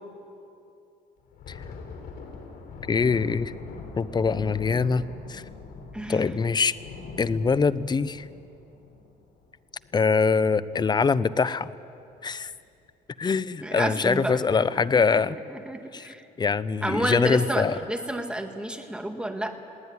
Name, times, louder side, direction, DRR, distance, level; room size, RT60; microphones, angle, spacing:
Thunder, 1.2-10.3 10.6-10.8 11.2-11.4 12.1-12.5, left 4 dB, 65° left, 4.0 m, -42 dB
voice 1, 2.9-3.5 4.0-5.4 6.1-6.7 7.2-8.2 9.9-11.7 12.2-12.5 13.2-15.4 15.9-16.1 16.4-17.7, left 5 dB, 25° left, 17 dB, 0.6 m, -23 dB
voice 2, 5.9-6.4 13.6-14.4 14.9-15.2 15.5-16.3 16.8-19.5, right 1 dB, 5° right, 5 dB, 2.0 m, -30 dB
21.0 x 17.5 x 9.7 m, 2.7 s
cardioid pair, 110°, 17 cm